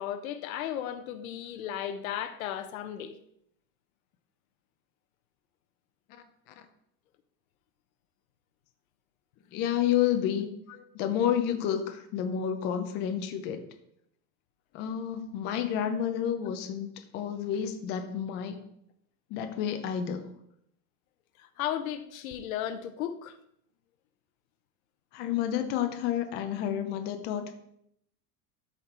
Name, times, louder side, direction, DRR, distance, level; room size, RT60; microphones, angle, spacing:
voice 1, 0.0-3.1 10.7-10.8 21.4-23.4, left 10 dB, 90° left, 1.0 m, -35 dB
voice 2, 9.5-10.5 10.9-13.6 14.7-18.6 19.3-20.3 25.1-27.5, left 9 dB, 25° left, 0.6 m, -30 dB
13.0 x 4.3 x 4.3 m
supercardioid pair, 175°, 41 cm